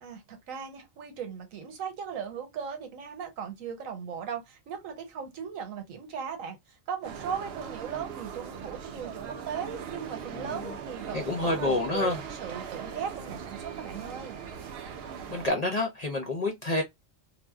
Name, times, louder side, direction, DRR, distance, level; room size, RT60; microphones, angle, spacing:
voice 1, 0.0-6.6 6.9-14.4, right 7 dB, 85° right, 1.2 m, -38 dB
sound 1, 7.0-15.5, right 7 dB, 65° right, 0.6 m, -40 dB
voice 2, 10.4-10.8 11.1-12.2 15.3-16.8, left 2 dB, 55° left, 0.4 m, -28 dB
2.5 x 2.0 x 3.3 m
omnidirectional pair, 1.4 m